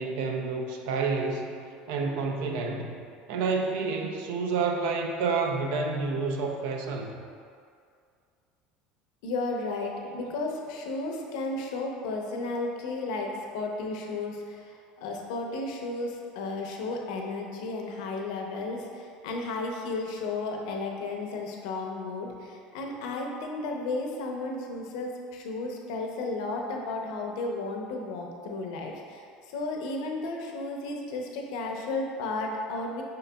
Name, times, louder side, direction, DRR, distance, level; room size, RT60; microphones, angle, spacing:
voice 1, 0.0-1.5 1.9-2.9 3.3-7.1, right 4 dB, 75° right, 3 dB, 0.5 m, -29 dB
voice 2, 9.2-33.0, left 3 dB, 80° left, 1 dB, 0.6 m, -33 dB
5.4 x 3.8 x 2.2 m, 2.3 s
supercardioid pair, 110°, 3 cm